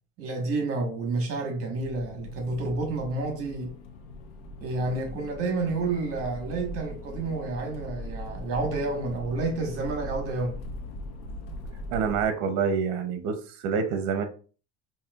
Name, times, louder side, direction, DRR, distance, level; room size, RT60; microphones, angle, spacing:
voice 1, 0.2-3.7 4.6-10.6, right 3 dB, 50° right, 1.3 m, -30 dB
Accelerating revving vroom, 1.7-12.2, left 1 dB, 85° left, 0.8 m, -40 dB
voice 2, 11.9-14.2, right 6 dB, 70° right, 0.8 m, -27 dB
5.4 x 2.7 x 2.3 m
cardioid pair, 130°, 30 cm